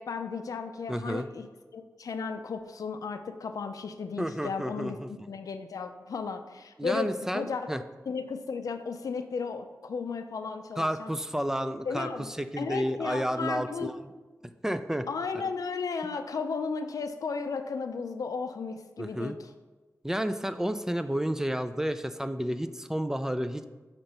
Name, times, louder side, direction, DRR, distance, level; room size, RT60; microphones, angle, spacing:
voice 1, 0.0-1.5 1.7-5.0 5.3-7.7 8.1-11.1 11.9-13.9 15.1-19.5, left 5 dB, 80° left, 8 dB, 0.4 m, -34 dB
voice 2, 0.9-1.3 4.2-5.1 6.8-7.8 10.8-14.0 14.6-15.1 19.0-19.4 20.0-23.6, equal, 10° right, 9 dB, 0.3 m, -31 dB
6.3 x 2.9 x 5.5 m, 1.2 s
cardioid pair, 55°, 6 cm